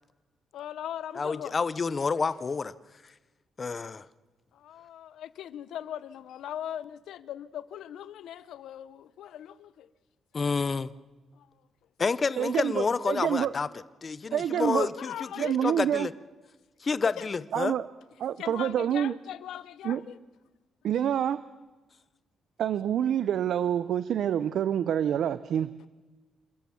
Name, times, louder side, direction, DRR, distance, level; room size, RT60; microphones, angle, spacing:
voice 1, 0.5-1.6 4.5-9.9 11.3-11.5 14.5-15.7 17.0-17.3 18.4-20.2 25.8-25.9, left 11 dB, 90° left, 0.9 m, -40 dB
voice 2, 1.1-2.7 3.6-4.1 10.3-10.9 12.0-13.7 14.0-15.1 15.4-16.1 16.8-17.7, left 4 dB, 30° left, 0.7 m, -29 dB
voice 3, 12.4-13.5 14.3-14.9 15.4-16.1 17.5-17.9 18.2-19.1 19.8-20.0 20.8-21.4 22.6-25.7, right 9 dB, 65° right, 0.6 m, -27 dB
28.0 x 14.0 x 7.1 m
cardioid pair, 160°, 0 cm